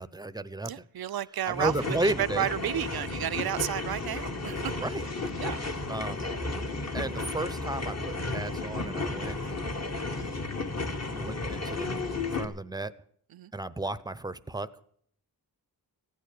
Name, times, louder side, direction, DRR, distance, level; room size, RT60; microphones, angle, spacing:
voice 1, 0.0-0.8 1.5-2.5 4.8-5.0 5.9-6.2 6.9-9.7 10.2-10.3 11.1-12.9 13.5-14.8, right 2 dB, 10° right, 14 dB, 0.7 m, -34 dB
voice 2, 0.6-4.9 5.4-5.6 13.3-13.5, right 11 dB, 65° right, 14 dB, 0.6 m, -32 dB
sound 1, 1.5-12.4, left 3 dB, 40° left, 1.7 m, -33 dB
15.5 x 9.4 x 8.4 m, 0.64 s
wide cardioid pair, 95°, 40 cm